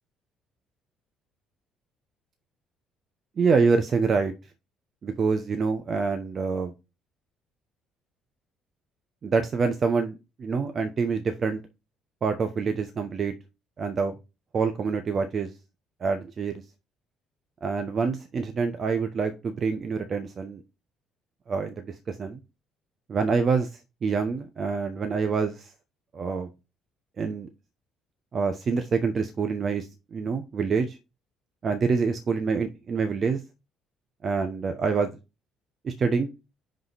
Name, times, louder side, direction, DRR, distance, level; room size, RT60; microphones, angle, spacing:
voice 1, 3.4-4.3 5.0-6.7 9.2-11.6 12.2-13.3 13.8-14.2 14.5-15.5 16.0-16.6 17.6-20.6 21.5-22.4 23.1-23.7 24.0-25.7 26.1-26.5 27.2-27.5 28.3-31.0 31.6-33.4 34.2-35.1 35.8-36.3, right 5 dB, 45° right, 7 dB, 1.0 m, -26 dB
5.4 x 3.7 x 5.7 m, 0.27 s
hypercardioid pair, 60°, 0 cm